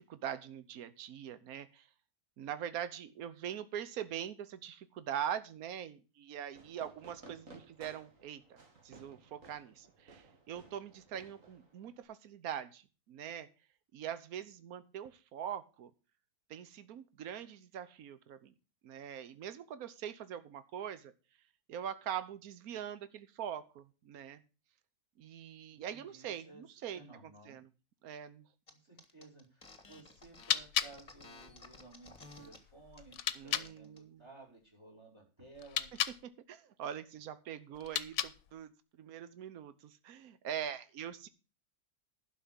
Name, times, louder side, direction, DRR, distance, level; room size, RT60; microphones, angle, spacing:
voice 1, 0.0-1.9 2.4-13.5 13.9-15.9 16.5-18.5 18.8-21.1 21.7-24.4 25.2-27.0 27.5-27.7 28.0-28.4 33.4-34.2 36.2-38.7 39.0-41.3, right 9 dB, 75° right, 13 dB, 1.3 m, -43 dB
Fireworks, 6.5-12.0, right 3 dB, 60° right, 2.4 m, -58 dB
voice 2, 25.7-26.6 26.9-27.6 28.7-35.9, right 3 dB, 15° right, 0 dB, 5.2 m, -56 dB
sound 1, 28.7-28.8 29.0-32.6 32.9-33.2 33.5-34.0, left 2 dB, 25° left, 1.6 m, -54 dB
sound 2, 30.2-33.7 35.5-36.2 37.7-38.6, left 10 dB, 65° left, 1.1 m, -37 dB
11.5 x 5.6 x 7.6 m, 0.33 s
omnidirectional pair, 1.6 m